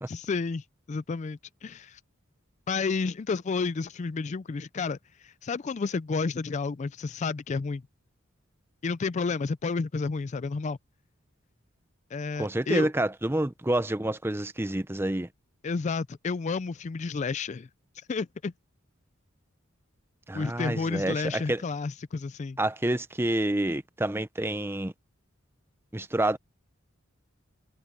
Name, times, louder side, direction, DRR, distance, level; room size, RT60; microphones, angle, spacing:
voice 1, 0.1-2.0 2.7-7.8 8.8-10.8 12.1-12.9 15.6-17.7 18.1-18.5 20.3-22.6, left 4 dB, 35° left, 0.4 m, -31 dB
voice 2, 12.4-15.3 20.3-21.6 22.6-24.9 25.9-26.4, right 1 dB, 10° right, 0.7 m, -28 dB
head